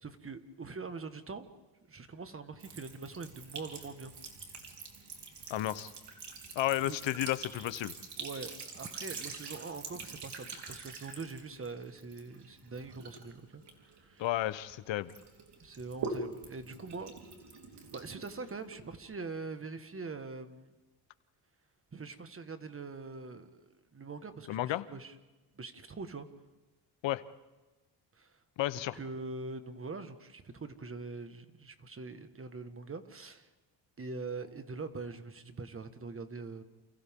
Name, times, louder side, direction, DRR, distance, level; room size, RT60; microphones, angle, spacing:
voice 1, 0.0-1.5 1.9-4.1 6.8-7.0 8.2-14.3 15.6-17.1 17.9-20.7 21.9-25.1 25.5-26.3 28.1-28.4 28.8-33.5 34.0-36.6, right 4 dB, 30° right, 9 dB, 1.6 m, -43 dB
Sink (filling or washing) / Trickle dribble, 2.6-14.7 15.1-19.0, right 4 dB, 65° right, 3.9 m, -45 dB
voice 2, 5.5-5.9 6.5-7.9 14.2-15.1 24.5-24.8 27.0-27.2 28.6-29.0, left 14 dB, 85° left, 15 dB, 1.0 m, -32 dB
29.5 x 28.5 x 3.7 m, 1.1 s
cardioid pair, 110°, 44 cm